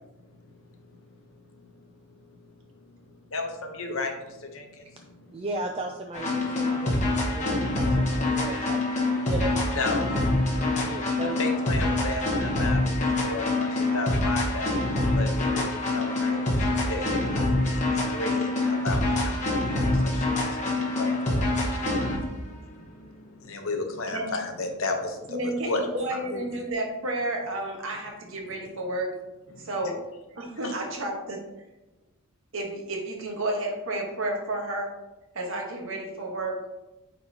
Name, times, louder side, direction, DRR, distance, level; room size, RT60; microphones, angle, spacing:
voice 1, 3.3-4.9 9.7-10.1 11.4-14.7 15.1-25.4 25.7-25.8 26.3-26.4 29.5-29.7 30.6-30.7, left 3 dB, 65° left, 4 dB, 0.9 m, -34 dB
voice 2, 5.3-8.8 9.2-10.0 10.6-11.6, right 2 dB, 25° right, 3 dB, 0.4 m, -36 dB
sound 1, 6.1-22.3, left 2 dB, 35° left, 1.1 m, -25 dB
voice 3, 25.3-29.1 29.6-30.0 30.3-31.4 32.5-34.9 35.3-36.5, right 1 dB, 65° right, 1 dB, 1.3 m, -31 dB
8.8 x 4.0 x 2.9 m, 1.0 s
head